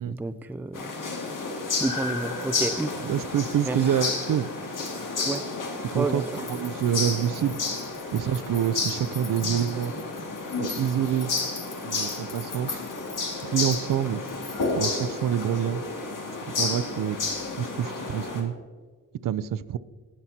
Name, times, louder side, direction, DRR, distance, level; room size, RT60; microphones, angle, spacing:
voice 1, 0.1-0.9 1.8-3.1 3.7-3.8 5.2-5.5 5.9-6.3, right 2 dB, 5° right, 11 dB, 0.3 m, -30 dB
sound 1, 0.7-18.4, left 3 dB, 60° left, 2.1 m, -31 dB
voice 2, 3.0-4.5 5.8-7.6 8.1-9.9 10.6-11.3 11.8-12.8 13.4-14.2 14.7-15.8 16.6-17.2 17.5-18.5 19.2-19.8, right 9 dB, 65° right, 16 dB, 0.5 m, -27 dB
sound 2, 6.3-14.8, left 4 dB, 45° left, 1.2 m, -43 dB
18.5 x 7.3 x 2.8 m, 1.5 s
wide cardioid pair, 135°, 35 cm